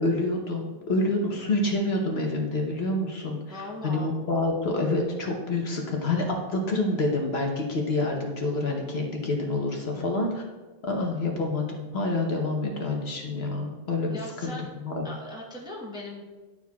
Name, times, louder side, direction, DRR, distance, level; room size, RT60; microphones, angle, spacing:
voice 1, 0.0-3.6 3.8-10.4 10.9-14.5 14.8-15.0, left 2 dB, 55° left, 1 dB, 1.1 m, -27 dB
voice 2, 3.5-4.1 9.9-10.3 14.1-14.7 15.0-16.2, left 1 dB, 5° right, -2 dB, 0.8 m, -39 dB
11.0 x 4.7 x 2.3 m, 1.3 s
omnidirectional pair, 1.3 m